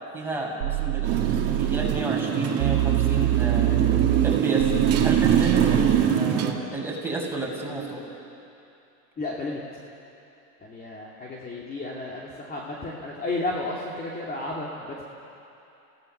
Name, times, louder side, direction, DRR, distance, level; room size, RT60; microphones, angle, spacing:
voice 1, 0.1-3.7 4.2-4.7 5.0-8.1, right 3 dB, 5° right, -4 dB, 6.2 m, -31 dB
sound 1, 0.6-2.1 2.6-6.1, right 18 dB, 85° right, 0.9 m, -25 dB
Motorcycle, 1.0-6.5, right 8 dB, 35° right, 2.4 m, -23 dB
voice 2, 9.2-9.6 10.6-15.0, left 2 dB, 20° left, -4 dB, 2.8 m, -32 dB
30.0 x 18.0 x 6.9 m, 2.8 s
supercardioid pair, 125°, 45 cm